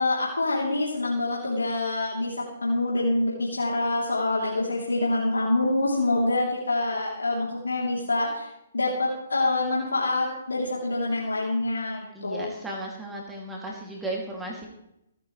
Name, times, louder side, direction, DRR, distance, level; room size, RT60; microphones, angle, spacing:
voice 1, 0.0-8.5 8.7-12.5, left 2 dB, 85° left, -4 dB, 3.3 m, -26 dB
voice 2, 12.1-14.7, right 1 dB, 10° right, -1 dB, 2.7 m, -35 dB
25.0 x 9.5 x 3.3 m, 0.83 s
figure-of-eight pair, 130°, 0 cm